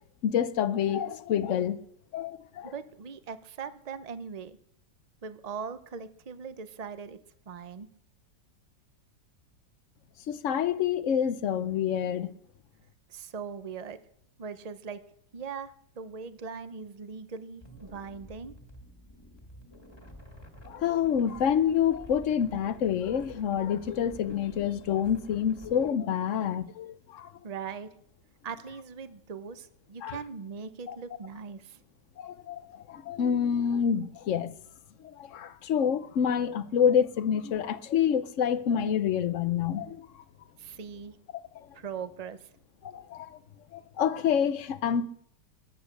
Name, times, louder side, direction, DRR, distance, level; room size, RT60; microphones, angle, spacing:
voice 1, 0.2-1.8 2.1-2.7 10.3-12.3 20.7-27.3 30.0-30.2 30.9-31.0 32.2-34.5 35.0-40.2 41.5-41.7 42.8-43.4 43.7-45.1, left 8 dB, 55° left, 0.9 m, -27 dB
voice 2, 2.7-4.6 5.2-7.2 7.5-7.9 13.1-14.0 14.4-15.0 15.3-18.6 27.4-27.9 28.4-31.8 40.6-41.2 41.7-42.5, right 6 dB, 50° right, 0.4 m, -40 dB
sound 1, 17.6-25.9, equal, 15° left, 2.0 m, -50 dB
21.0 x 8.3 x 6.6 m
omnidirectional pair, 1.9 m